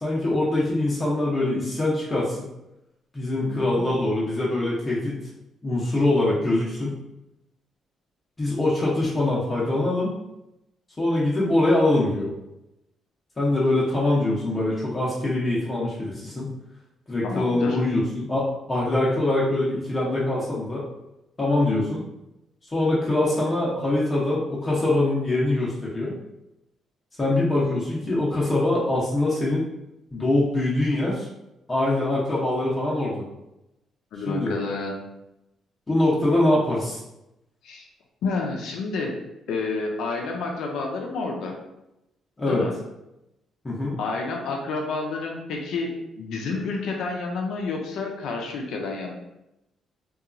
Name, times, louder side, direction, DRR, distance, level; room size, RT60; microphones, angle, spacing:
voice 1, 0.0-2.5 3.1-5.2 5.6-7.0 8.4-10.1 11.0-12.3 13.4-16.5 17.1-20.9 21.4-22.0 22.7-26.1 27.2-29.6 30.1-31.3 31.7-33.2 34.3-34.6 35.9-37.0 42.4-42.6 43.6-44.0, left 2 dB, 25° left, -6 dB, 0.7 m, -23 dB
voice 2, 17.2-17.8 34.1-35.0 37.6-37.9 38.2-39.1 39.5-41.5 42.5-42.7 44.0-49.1, left 3 dB, 80° left, 1 dB, 0.4 m, -29 dB
2.8 x 2.3 x 2.5 m, 0.89 s
cardioid pair, 90°, 0 cm